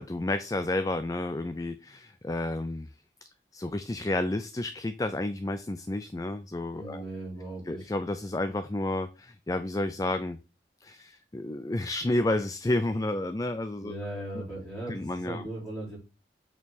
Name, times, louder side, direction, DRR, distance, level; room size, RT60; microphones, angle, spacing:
voice 1, 0.0-2.9 3.5-7.0 7.7-10.4 10.8-13.9 14.3-14.4 14.9-15.4, left 2 dB, 20° left, 10 dB, 0.4 m, -31 dB
voice 2, 6.7-7.9 13.8-16.0, right 1 dB, 5° left, -7 dB, 4.4 m, -38 dB
8.4 x 4.6 x 4.1 m, 0.30 s
head